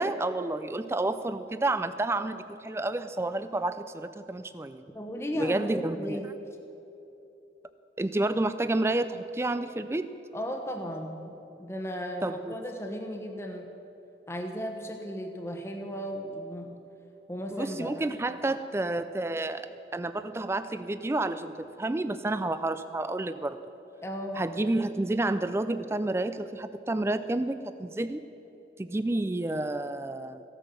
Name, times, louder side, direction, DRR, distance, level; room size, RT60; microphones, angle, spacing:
voice 1, 0.0-4.8 5.4-6.2 8.0-10.1 12.2-12.5 17.5-23.6 24.3-28.3 28.8-30.4, right 2 dB, 15° right, 12 dB, 0.3 m, -30 dB
voice 2, 4.9-6.3 10.3-13.7 14.3-16.8 17.3-18.0 24.0-24.4, equal, 15° left, 2 dB, 1.0 m, -35 dB
15.5 x 9.1 x 6.9 m, 3.0 s
head